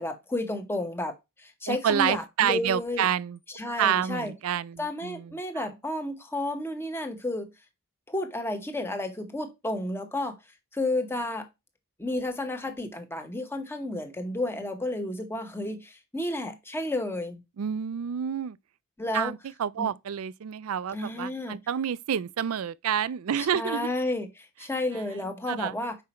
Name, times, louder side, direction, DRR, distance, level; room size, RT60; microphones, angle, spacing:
voice 1, 0.0-3.1 3.5-4.3 4.8-7.5 8.1-10.4 10.7-11.5 12.0-17.4 19.0-19.3 19.8-19.9 20.9-21.6 23.4-26.0, left 1 dB, 10° left, 1.0 m, -32 dB
voice 2, 1.7-3.4 3.8-5.7 17.6-18.6 19.1-23.9 25.5-25.7, right 8 dB, 70° right, 0.4 m, -28 dB
5.6 x 4.9 x 4.3 m
head